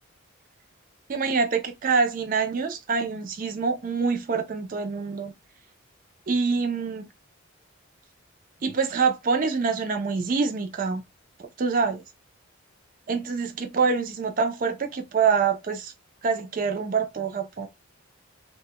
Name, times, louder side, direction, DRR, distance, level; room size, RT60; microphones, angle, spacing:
voice 1, 1.1-5.3 6.3-7.1 8.6-11.0 11.6-12.0 13.1-15.9 16.2-17.7, right 5 dB, 40° right, 0.4 m, -25 dB
2.2 x 2.1 x 2.7 m
head